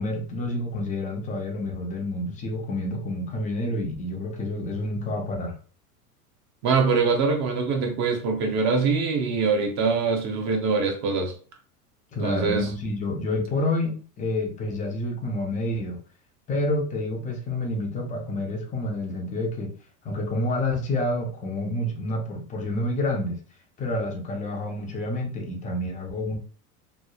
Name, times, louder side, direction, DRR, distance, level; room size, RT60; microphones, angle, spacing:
voice 1, 0.0-5.6 12.1-16.0 16.5-19.7 20.0-23.4 23.8-26.4, left 1 dB, 15° left, 0.4 m, -28 dB
voice 2, 6.6-11.3 12.2-12.7, right 4 dB, 35° right, 0.6 m, -23 dB
3.0 x 2.0 x 2.3 m
hypercardioid pair, 95°, 48 cm